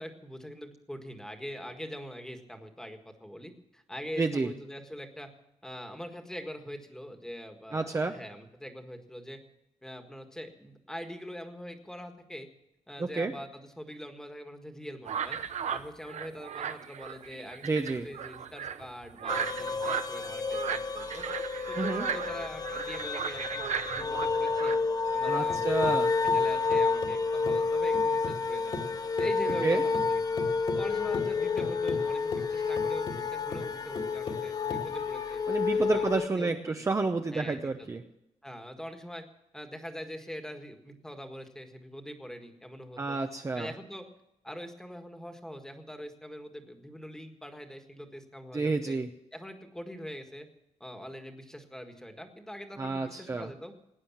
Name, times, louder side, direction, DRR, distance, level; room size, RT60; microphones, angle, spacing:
voice 1, 0.0-5.3 5.6-9.4 9.8-12.5 12.9-15.4 15.7-24.8 25.1-28.8 29.2-30.2 30.7-35.4 35.8-36.0 36.3-36.8 37.3-37.9 38.4-39.2 39.5-43.2 43.5-44.0 44.4-49.0 49.3-50.5 50.8-53.7, equal, 5° left, 5 dB, 1.7 m, -43 dB
voice 2, 4.2-4.5 7.7-8.1 13.0-13.3 17.6-18.1 21.7-22.1 25.2-26.1 29.6-29.8 35.5-38.0 43.0-43.7 48.5-49.1 52.8-53.5, right 3 dB, 25° right, 5 dB, 0.8 m, -30 dB
sound 1, 15.1-24.8, right 8 dB, 70° right, 0.9 m, -36 dB
sound 2, 19.3-36.3, left 4 dB, 30° left, 0.8 m, -30 dB
sound 3, 25.0-28.5 28.7-35.4, left 3 dB, 45° left, 2.2 m, -40 dB
18.5 x 9.6 x 7.3 m, 0.87 s
wide cardioid pair, 150°, 12 cm